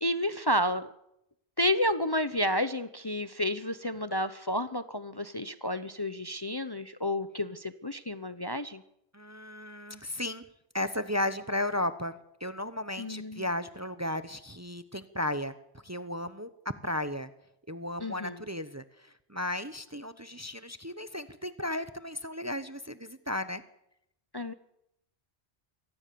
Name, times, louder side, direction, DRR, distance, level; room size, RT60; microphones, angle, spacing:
voice 1, 0.0-0.9 1.6-8.8 13.0-13.4 18.0-18.4 24.3-24.5, left 1 dB, 25° left, 12 dB, 0.7 m, -31 dB
voice 2, 9.1-10.5 10.7-15.5 15.8-16.5 16.8-17.3 17.7-23.6, left 1 dB, 15° right, 12 dB, 0.8 m, -34 dB
25.0 x 18.0 x 6.9 m, 0.81 s
omnidirectional pair, 1.1 m